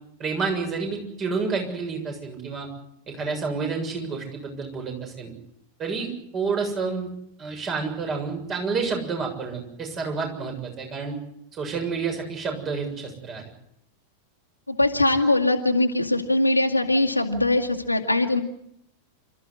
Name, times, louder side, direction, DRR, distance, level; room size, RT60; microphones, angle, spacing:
voice 1, 0.2-2.7 3.1-5.3 5.8-7.1 7.4-11.2 11.5-13.4, right 4 dB, 30° right, 3 dB, 7.1 m, -29 dB
voice 2, 14.7-18.4, left 2 dB, 85° left, 2 dB, 2.2 m, -21 dB
28.0 x 14.0 x 9.9 m, 0.76 s
figure-of-eight pair, 90°, 0 cm